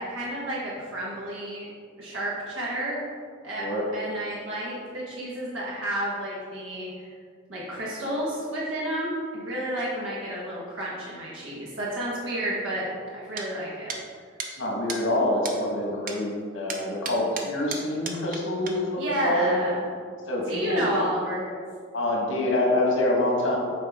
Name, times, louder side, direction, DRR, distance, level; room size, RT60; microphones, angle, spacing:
voice 1, 0.0-1.7 2.0-3.0 3.4-3.6 3.9-7.1 7.5-12.9 13.1-13.9 19.0-19.8 20.5-21.6, right 1 dB, 90° right, -6 dB, 1.3 m, -31 dB
sound 1, 13.4-13.5 13.9-14.0 14.4-14.5 14.9-15.0 15.5-15.6 16.1-16.2 16.7-18.4 18.7-18.8, right 5 dB, 45° right, 0.7 m, -34 dB
voice 2, 14.6-19.6 20.3-20.8 21.9-23.6, left 1 dB, 80° left, -1 dB, 1.6 m, -26 dB
7.7 x 4.7 x 3.6 m, 2.1 s
head